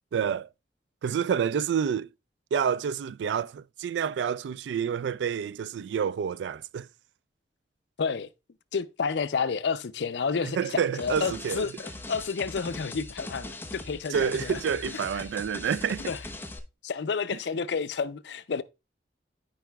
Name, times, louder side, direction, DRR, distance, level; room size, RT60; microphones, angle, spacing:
voice 1, 0.1-0.5 1.0-2.1 2.5-6.9 10.4-11.7 14.1-16.1 17.3-17.4, right 7 dB, 85° right, 0.3 m, -28 dB
voice 2, 8.0-8.3 8.7-14.6 15.1-15.2 16.1-16.2 16.8-18.6, left 5 dB, 80° left, 0.5 m, -30 dB
sound 1, 11.0-16.6, left 2 dB, 10° left, 0.8 m, -40 dB
13.5 x 4.8 x 2.3 m
head